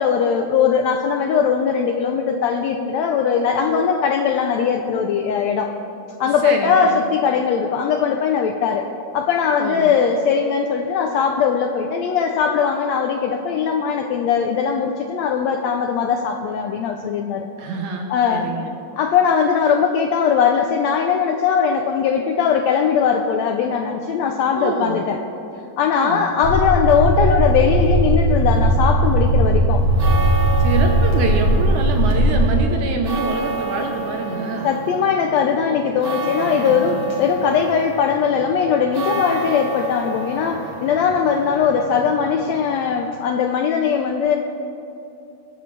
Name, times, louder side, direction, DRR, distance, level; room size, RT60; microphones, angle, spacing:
voice 1, 0.0-5.7 6.2-8.9 9.1-17.5 18.1-18.5 19.0-25.2 25.8-29.8 34.6-44.4, left 6 dB, 90° left, 4 dB, 1.5 m, -20 dB
voice 2, 6.2-7.0 9.6-9.9 17.6-18.8 24.5-25.0 25.9-26.3 30.6-34.7, right 4 dB, 70° right, 3 dB, 2.2 m, -25 dB
sound 1, 26.4-32.6, right 1 dB, 65° left, 3.3 m, -17 dB
sound 2, 29.8-43.3, right 2 dB, 45° right, 1.9 m, -30 dB
21.5 x 9.4 x 3.3 m, 2.8 s
omnidirectional pair, 3.8 m